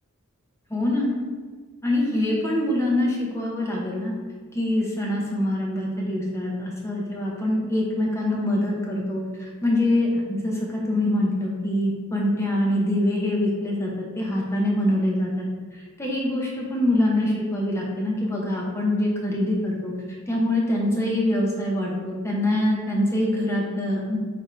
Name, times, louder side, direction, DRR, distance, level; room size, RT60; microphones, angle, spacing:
voice 1, 0.7-1.2 1.8-4.1 4.5-15.5 15.7-19.9 20.3-24.2, left 1 dB, 10° left, -3 dB, 0.6 m, -24 dB
3.4 x 2.5 x 4.3 m, 1.5 s
head